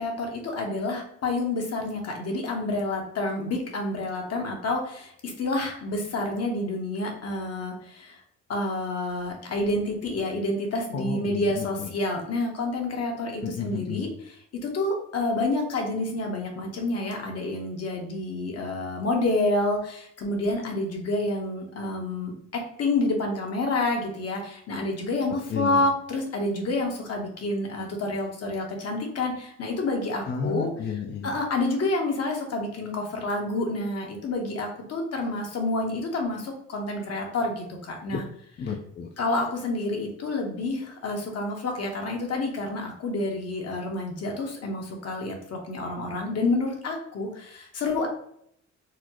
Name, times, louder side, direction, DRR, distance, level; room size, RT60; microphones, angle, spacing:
voice 1, 0.0-8.2 8.5-14.1 14.6-30.7 31.2-38.2 39.2-48.1, left 2 dB, 55° left, 1 dB, 1.0 m, -28 dB
voice 2, 10.9-12.0 13.4-14.1 25.5-25.9 30.2-31.3 38.1-38.2 38.6-39.1, left 6 dB, 35° left, 2 dB, 0.4 m, -32 dB
4.2 x 2.0 x 2.9 m, 0.69 s
cardioid pair, 90°, 30 cm